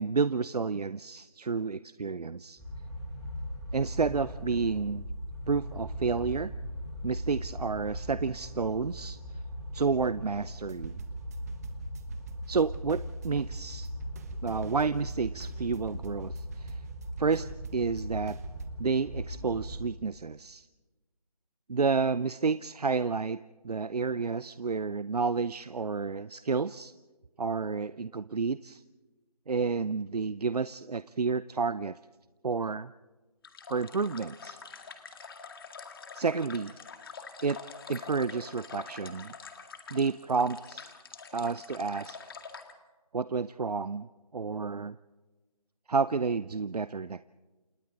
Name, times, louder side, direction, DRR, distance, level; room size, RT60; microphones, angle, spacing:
voice 1, 0.0-2.6 3.7-5.0 5.5-6.5 7.0-9.2 9.7-11.0 12.5-13.9 14.4-16.8 17.2-18.4 18.8-20.7 21.7-23.4 23.6-26.9 27.4-28.8 29.5-31.9 32.4-32.9 33.7-34.6 36.1-36.7 37.4-37.6 37.9-39.3 39.9-40.9 41.3-42.2 43.1-45.0 45.9-47.2, right 4 dB, 75° right, 16 dB, 0.6 m, -30 dB
sound 1, 2.6-19.8, equal, 5° left, 7.1 m, -39 dB
sound 2, 10.6-18.7, right 5 dB, 25° right, 1.3 m, -45 dB
sound 3, 33.4-42.7, left 5 dB, 35° left, 1.9 m, -46 dB
29.0 x 27.5 x 3.9 m, 1.2 s
figure-of-eight pair, 160°, 20 cm